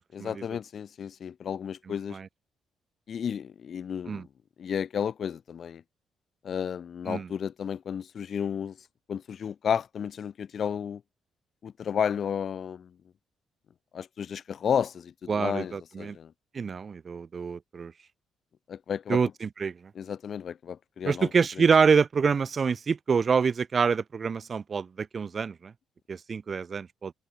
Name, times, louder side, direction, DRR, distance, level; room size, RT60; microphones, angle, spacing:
voice 1, 0.1-2.2 3.1-4.3 4.6-5.8 6.4-8.8 9.1-11.0 11.6-12.9 13.9-16.3 18.7-19.2 19.9-21.3 21.6-21.7, left 8 dB, 55° left, 0.7 m, -32 dB
voice 2, 1.9-2.3 4.1-4.3 7.1-7.3 15.3-16.2 16.5-17.9 19.1-19.9 21.0-25.7 26.1-27.1, right 5 dB, 40° right, 1.6 m, -26 dB
cardioid pair, 90°, 0 cm